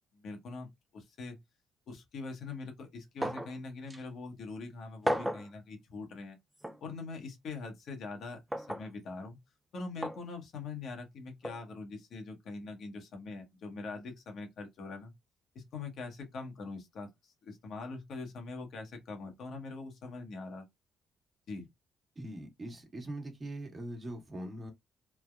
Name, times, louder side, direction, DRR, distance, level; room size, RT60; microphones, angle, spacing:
voice 1, 0.1-1.4 1.9-6.4 6.8-9.4 9.7-15.1 15.5-20.6 21.5-21.7, left 3 dB, 70° left, 1.0 m, -43 dB
sound 1, 3.2-3.6 3.9-4.0 5.1-5.5 6.6-6.8 8.5-8.9 10.0-10.2 11.4-11.6, equal, 5° right, 0.4 m, -33 dB
voice 2, 22.2-24.7, right 1 dB, 30° right, 1.1 m, -41 dB
3.3 x 2.1 x 2.3 m
cardioid pair, 90°, 0 cm